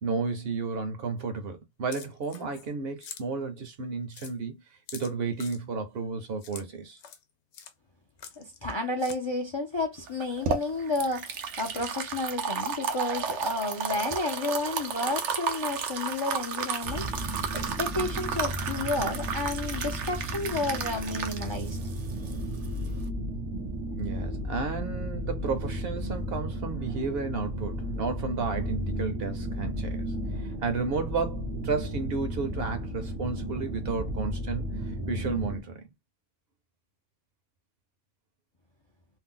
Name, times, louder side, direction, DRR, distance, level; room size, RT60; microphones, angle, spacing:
voice 1, 0.0-4.6 4.9-7.0 24.0-30.1 30.3-35.9, right 4 dB, 60° right, 0.9 m, -32 dB
sound 1, 1.9-2.7 3.0-3.2 3.7-3.8 4.1-4.3 4.9-5.6 6.4-6.6 7.0-7.2 7.5-7.7 8.2-8.7 9.0-9.2, left 7 dB, 75° left, 0.9 m, -45 dB
voice 2, 8.4-21.8, left 2 dB, 35° left, 0.4 m, -31 dB
sound 2, 10.1-23.1, right 6 dB, 85° right, 1.0 m, -33 dB
sound 3, 16.8-35.6, equal, 40° right, 0.6 m, -34 dB
2.7 x 2.1 x 3.7 m
omnidirectional pair, 1.2 m